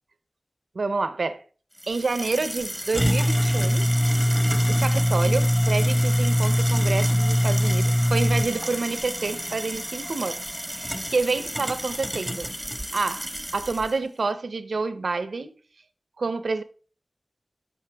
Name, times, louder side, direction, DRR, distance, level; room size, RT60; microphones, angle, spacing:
voice 1, 0.7-1.4 1.9-3.8 4.7-10.4 10.7-12.5 12.9-15.5 16.2-16.6, right 3 dB, 90° right, 0.7 m, -28 dB
sound 1, 1.8-13.9, equal, 5° right, 1.0 m, -24 dB
13.5 x 5.3 x 3.4 m
wide cardioid pair, 45°, 0 cm